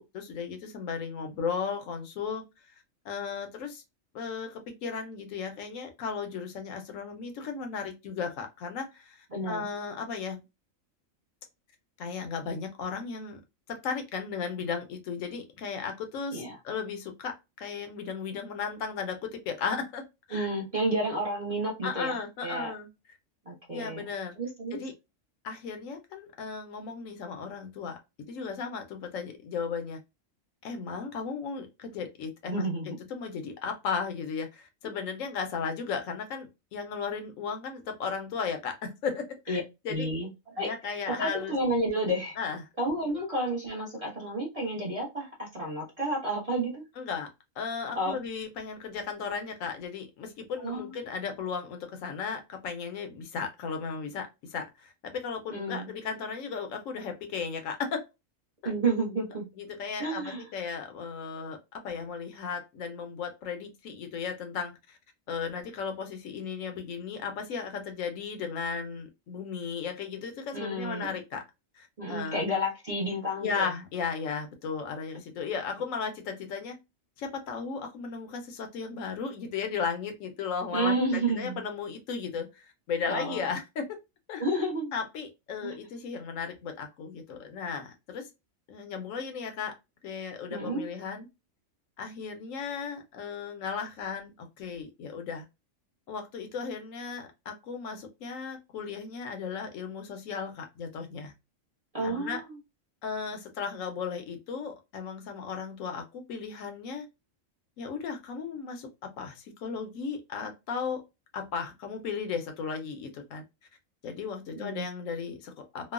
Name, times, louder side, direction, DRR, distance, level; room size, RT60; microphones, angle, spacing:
voice 1, 0.0-2.4 3.0-3.8 4.1-10.4 12.0-13.4 13.7-20.5 21.8-22.9 23.7-24.3 24.7-24.9 25.4-28.0 28.3-30.0 30.6-40.1 40.6-41.5 42.4-42.6 47.0-47.3 47.6-58.0 58.6-58.7 59.6-65.0 65.3-71.4 71.7-72.4 73.4-76.8 77.2-84.0 84.3-84.4 84.9-88.3 88.7-89.7 90.0-91.3 92.0-95.4 96.1-101.3 102.0-102.4 103.0-107.1 107.8-111.0 111.3-113.4 114.0-115.9, left 5 dB, 80° left, 1.0 m, -35 dB
voice 2, 9.3-9.7 16.3-16.6 20.3-22.2 22.4-22.7 23.5-24.1 24.4-24.8 32.5-32.9 39.5-39.6 39.9-40.7 41.1-42.3 42.8-46.8 47.9-48.2 50.6-50.9 55.5-55.9 58.6-59.5 60.0-60.4 70.5-71.2 72.0-73.7 80.7-81.6 83.1-83.4 84.4-84.9 85.6-85.7 90.5-90.9 101.9-102.5 114.6-114.9, right 1 dB, 35° right, 0.6 m, -31 dB
3.0 x 2.1 x 2.3 m
omnidirectional pair, 1.4 m